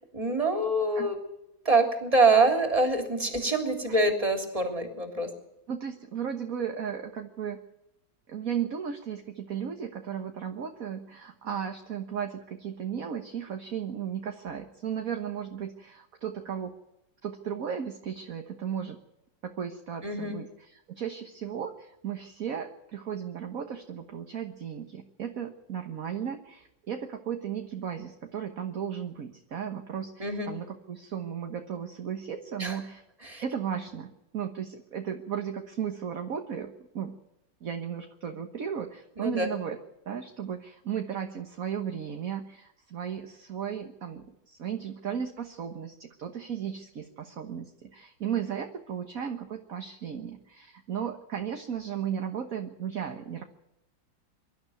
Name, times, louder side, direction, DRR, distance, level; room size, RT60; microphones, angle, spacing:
voice 1, 0.1-1.2 1.6-5.3 20.0-20.4 30.2-30.5 32.6-32.8 33.2-33.4 39.2-39.5, right 2 dB, 20° right, 4 dB, 3.4 m, -25 dB
voice 2, 5.7-7.6 8.3-16.7 17.2-19.0 19.4-20.4 20.9-33.0 33.4-37.1 37.6-39.8 40.1-53.4, right 8 dB, 50° right, 5 dB, 1.6 m, -35 dB
24.0 x 12.5 x 9.4 m, 0.88 s
omnidirectional pair, 2.0 m